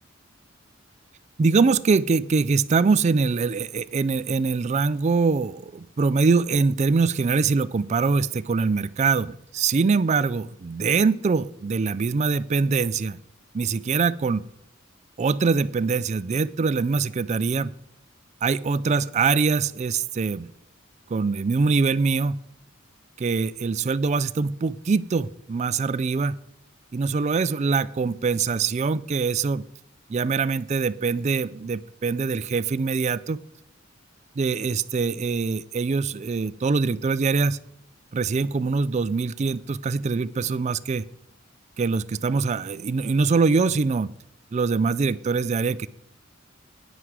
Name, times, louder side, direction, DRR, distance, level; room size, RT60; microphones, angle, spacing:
voice 1, 1.4-13.2 13.5-14.5 15.2-17.7 18.4-20.5 21.1-22.4 23.2-26.4 26.9-29.6 30.1-33.4 34.4-37.6 38.1-41.0 41.8-44.1 44.5-45.9, right 4 dB, 35° right, 16 dB, 0.3 m, -23 dB
9.5 x 9.3 x 4.8 m, 0.72 s
head